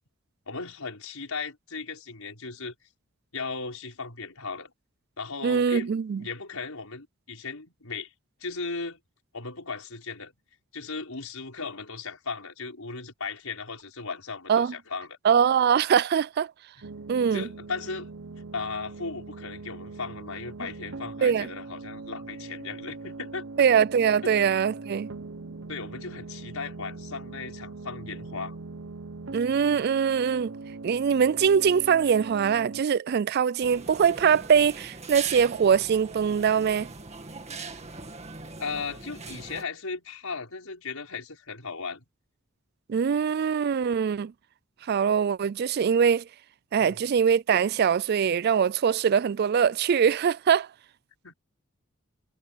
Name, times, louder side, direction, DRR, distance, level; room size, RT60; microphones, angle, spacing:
voice 1, 0.5-2.7 3.3-4.7 5.2-5.9 6.2-8.1 8.4-9.0 9.3-10.3 10.7-15.2 17.3-18.1 18.5-23.4 24.2-24.4 25.7-28.6 35.7-35.8 38.6-42.0 46.8-47.0 51.2-51.3, left 4 dB, 85° left, 5.3 m, -36 dB
voice 2, 5.4-6.2 14.5-14.7 15.2-16.5 17.1-17.5 21.2-21.5 23.6-25.1 29.3-30.5 30.8-36.9 42.9-44.3 44.9-46.2 46.7-50.7, right 7 dB, 50° right, 0.3 m, -23 dB
sound 1, 16.8-32.8, right 3 dB, 65° right, 0.8 m, -41 dB
sound 2, 33.6-39.6, right 4 dB, 30° right, 2.2 m, -41 dB
head